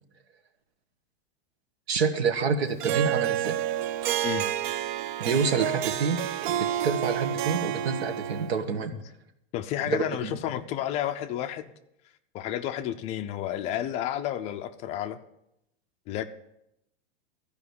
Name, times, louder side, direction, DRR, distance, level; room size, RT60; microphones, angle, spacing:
voice 1, 1.9-3.6 5.2-6.3 6.5-8.9 9.8-10.3, right 5 dB, 90° right, 8 dB, 1.5 m, -27 dB
Harp, 2.8-8.6, right 11 dB, 55° right, 0.5 m, -29 dB
voice 2, 9.5-11.7 12.3-15.2 16.1-16.2, left 11 dB, 20° left, 8 dB, 0.4 m, -31 dB
13.5 x 5.1 x 8.3 m, 0.83 s
supercardioid pair, 150°, 31 cm